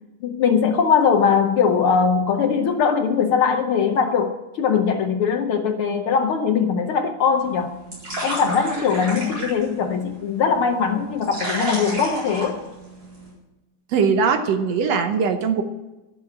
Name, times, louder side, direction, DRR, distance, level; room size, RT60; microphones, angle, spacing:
voice 1, 0.2-7.8 8.2-12.6, left 6 dB, 70° left, 4 dB, 1.3 m, -21 dB
sound 1, 7.4-13.3, right 1 dB, 35° right, 5.0 m, -32 dB
voice 2, 13.9-15.6, right 5 dB, 65° right, 7 dB, 2.0 m, -20 dB
11.5 x 7.4 x 8.5 m, 1.1 s
omnidirectional pair, 3.4 m